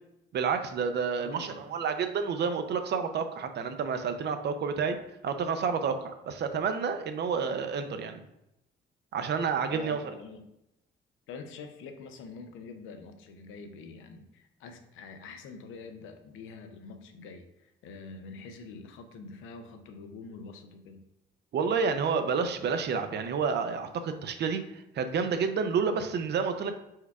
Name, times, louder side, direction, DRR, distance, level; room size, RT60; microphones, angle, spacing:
voice 1, 0.3-5.0 5.2-8.2 9.1-10.0 21.5-26.7, right 5 dB, 60° right, 8 dB, 0.5 m, -29 dB
voice 2, 1.2-1.6 9.7-10.5 11.3-21.0, left 4 dB, 85° left, 7 dB, 0.6 m, -45 dB
4.5 x 2.3 x 4.6 m, 0.85 s
cardioid pair, 90°, 20 cm